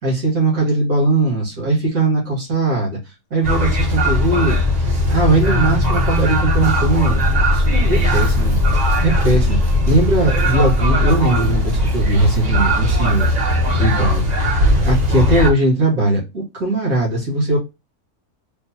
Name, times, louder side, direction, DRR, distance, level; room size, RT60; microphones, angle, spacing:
voice 1, 0.0-3.0 3.3-4.6 5.1-7.2 7.5-8.6 9.0-9.6 9.9-13.3 13.7-14.3 14.8-17.6, right 2 dB, 75° right, -4 dB, 2.1 m, -19 dB
sound 1, 3.4-15.5, left 1 dB, 45° right, 0.6 m, -18 dB
5.1 x 2.1 x 2.7 m, 0.25 s
omnidirectional pair, 1.5 m